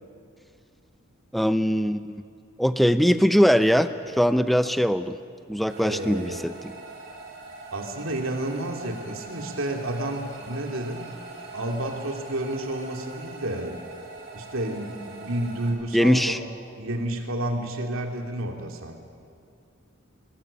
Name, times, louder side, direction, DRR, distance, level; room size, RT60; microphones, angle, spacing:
voice 1, 1.3-2.2 2.6-5.2 5.5-6.7 15.9-16.4, equal, ahead, 11 dB, 0.5 m, -21 dB
sound 1, 5.7-15.7, right 3 dB, 50° right, 3.4 m, -42 dB
voice 2, 5.8-6.5 7.7-11.1 11.5-13.8 14.3-16.4 16.8-19.0, right 1 dB, 80° right, 3 dB, 2.8 m, -30 dB
22.5 x 20.5 x 8.7 m, 2.3 s
head